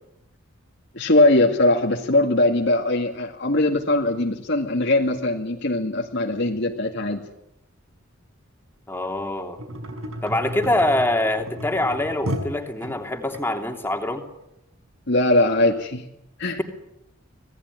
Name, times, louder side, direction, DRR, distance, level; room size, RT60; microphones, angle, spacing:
voice 1, 0.9-7.2 15.1-16.1 16.4-16.6, left 2 dB, 55° left, 1 dB, 2.2 m, -20 dB
voice 2, 8.9-9.6 10.2-14.3, left 1 dB, 10° left, 3 dB, 3.0 m, -24 dB
sound 1, 9.6-13.4 14.1-14.2, equal, 85° right, 5.9 m, -33 dB
26.0 x 18.5 x 9.5 m, 0.85 s
head